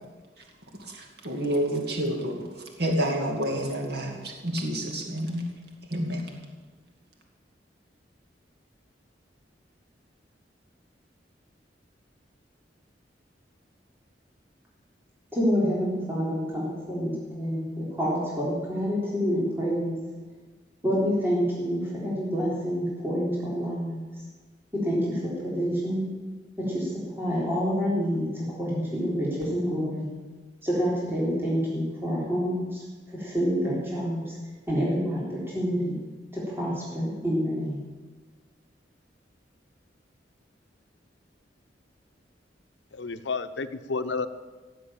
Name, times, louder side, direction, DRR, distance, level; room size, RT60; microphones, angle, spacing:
voice 1, 0.8-5.5 5.9-6.3, equal, 65° right, 2 dB, 2.5 m, -29 dB
voice 2, 15.3-20.0 20.8-24.0 24.7-26.0 26.6-30.1 30.6-32.8 33.1-34.4 34.7-36.0 36.3-37.8, equal, 15° right, -6 dB, 3.5 m, -27 dB
voice 3, 42.9-44.3, left 4 dB, 90° left, 10 dB, 0.8 m, -31 dB
16.5 x 7.6 x 8.9 m, 1.3 s
head